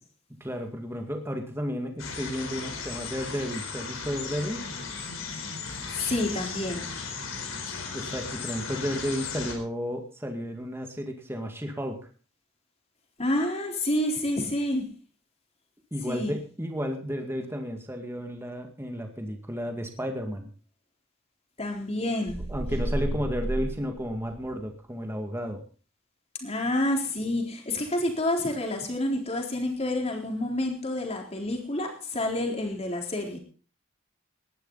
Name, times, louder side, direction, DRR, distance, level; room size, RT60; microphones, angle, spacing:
voice 1, 0.4-4.6 7.9-12.0 15.9-20.5 22.5-25.6, equal, 10° right, 4 dB, 2.0 m, -32 dB
sound 1, 2.0-9.6, left 5 dB, 70° left, 4.4 m, -36 dB
voice 2, 5.9-6.9 13.2-14.9 16.1-16.3 21.6-22.5 26.4-33.4, left 1 dB, 30° left, 2 dB, 4.0 m, -28 dB
sound 2, 22.3-24.7, right 1 dB, 85° right, 1.3 m, -32 dB
19.0 x 11.5 x 4.1 m, 0.38 s
head